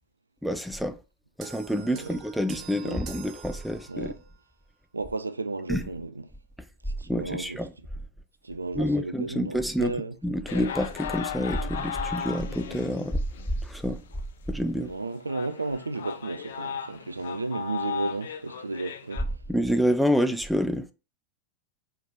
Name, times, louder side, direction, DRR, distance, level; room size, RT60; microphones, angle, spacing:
voice 1, 0.4-1.0 1.4-4.1 5.7-5.8 7.1-7.7 8.8-9.9 10.2-13.2 13.6-14.0 14.5-14.9 19.5-20.9, equal, ahead, 0.4 m, -27 dB
sound 1, 1.4-4.3, right 8 dB, 35° right, 0.8 m, -45 dB
voice 2, 1.8-2.2 2.8-3.0 3.9-4.2 4.9-6.3 7.0-7.9 8.4-10.2 14.8-19.2, right 3 dB, 80° right, 0.4 m, -33 dB
sound 2, 10.5-13.7 14.1-14.2 14.8-14.9 15.3-19.2, left 8 dB, 60° left, 0.4 m, -36 dB
4.3 x 3.9 x 2.9 m
figure-of-eight pair, 90°, 0 cm